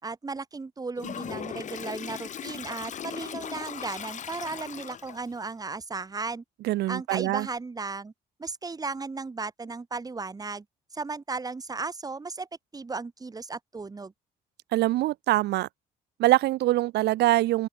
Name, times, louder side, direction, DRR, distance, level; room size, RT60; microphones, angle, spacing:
voice 1, 0.0-6.4 6.9-8.1 8.4-10.6 10.9-12.5 12.7-14.1, right 4 dB, 20° right, 6.3 m, -35 dB
Toilet flush, 1.0-5.3, left 8 dB, 45° left, 2.4 m, -38 dB
voice 2, 6.6-7.5 14.7-15.7 16.2-17.7, right 16 dB, 80° right, 2.9 m, -24 dB
open air
cardioid pair, 110°, 17 cm